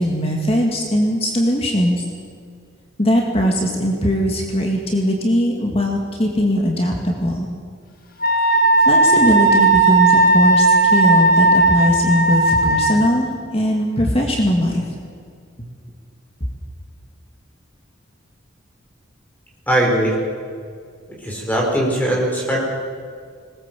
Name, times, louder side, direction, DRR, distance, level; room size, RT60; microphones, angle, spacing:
voice 1, 0.0-2.0 3.0-7.5 8.9-13.3 13.5-14.8, equal, 30° left, 0 dB, 2.3 m, -19 dB
Wind instrument woodwind instrument, 8.2-13.1, right 2 dB, 45° left, 1.9 m, -15 dB
voice 2, 19.7-20.2 21.1-22.7, right 1 dB, 10° left, -2 dB, 5.0 m, -20 dB
20.0 x 19.5 x 7.7 m, 2.1 s
head